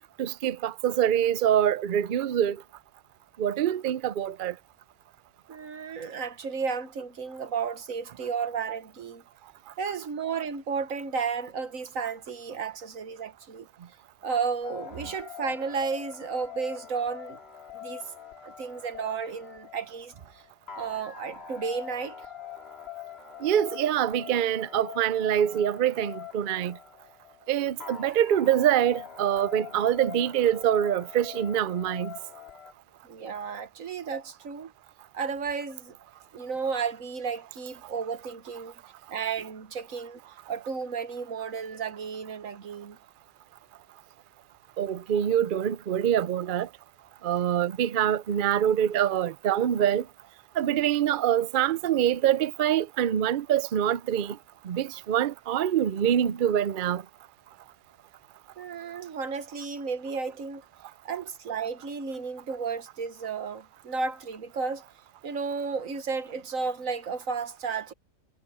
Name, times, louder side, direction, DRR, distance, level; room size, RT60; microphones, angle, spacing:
voice 1, 0.2-2.6 3.4-4.6 23.4-26.8 27.5-32.1 44.8-46.7 47.2-50.1 50.6-54.4 54.6-57.0, right 10 dB, 55° right, 0.6 m, -25 dB
voice 2, 5.5-9.2 9.8-13.7 14.2-17.4 17.7-18.0 18.4-20.4 20.7-22.2 33.0-34.7 35.1-36.0 36.3-38.7 39.1-40.2 40.5-43.0 58.6-60.6 61.0-64.8 65.2-67.9, right 5 dB, 85° right, 1.7 m, -33 dB
sound 1, 14.6-32.7, left 8 dB, 50° left, 2.5 m, -43 dB
omnidirectional pair, 1.4 m